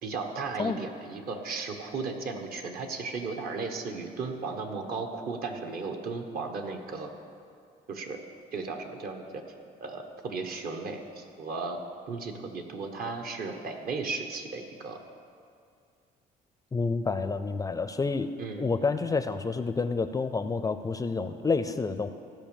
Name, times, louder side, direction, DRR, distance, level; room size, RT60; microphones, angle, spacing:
voice 1, 0.0-7.1 7.9-8.2 8.5-9.4 9.8-11.8 12.1-15.0 18.4-18.7, right 4 dB, 60° right, 5 dB, 1.3 m, -35 dB
voice 2, 16.7-18.3 18.6-22.1, left 4 dB, 20° left, 10 dB, 0.4 m, -29 dB
15.5 x 5.3 x 7.1 m, 2.3 s
cardioid pair, 110°, 17 cm